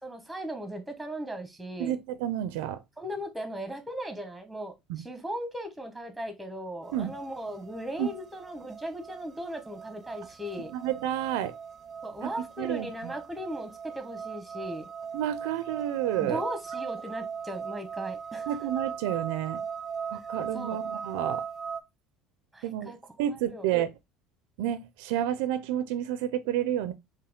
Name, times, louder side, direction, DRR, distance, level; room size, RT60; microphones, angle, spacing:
voice 1, 0.0-2.0 3.0-10.7 12.0-14.9 16.2-18.5 20.5-20.8 22.5-23.0 23.5-23.7, equal, 5° right, 1.2 m, -37 dB
voice 2, 1.8-2.8 4.9-5.0 6.9-7.1 8.0-8.1 10.7-11.6 12.2-13.1 15.1-16.4 18.5-19.6 20.1-21.5 22.6-22.9 23.2-23.9 24.6-26.9, right 11 dB, 85° right, 0.5 m, -30 dB
sound 1, 6.8-21.8, right 6 dB, 30° right, 0.6 m, -39 dB
4.7 x 2.8 x 3.6 m
supercardioid pair, 110°, 0 cm